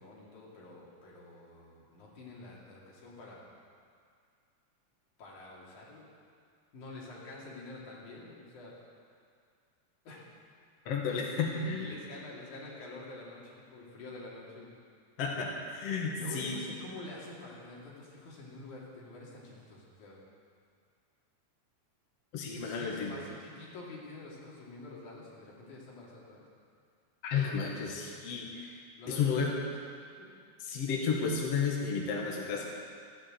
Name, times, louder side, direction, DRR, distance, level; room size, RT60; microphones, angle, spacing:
voice 1, 0.0-3.5 5.2-6.1 6.7-8.7 10.0-10.2 11.4-14.8 16.2-20.2 22.6-26.4 29.0-29.6, left 2 dB, 90° left, -5 dB, 4.3 m, -47 dB
voice 2, 10.9-11.9 15.2-16.5 22.3-23.1 27.2-28.8 29.1-29.5 30.7-32.7, left 5 dB, 60° left, -2 dB, 2.5 m, -32 dB
13.5 x 11.5 x 7.8 m, 2.2 s
omnidirectional pair, 3.4 m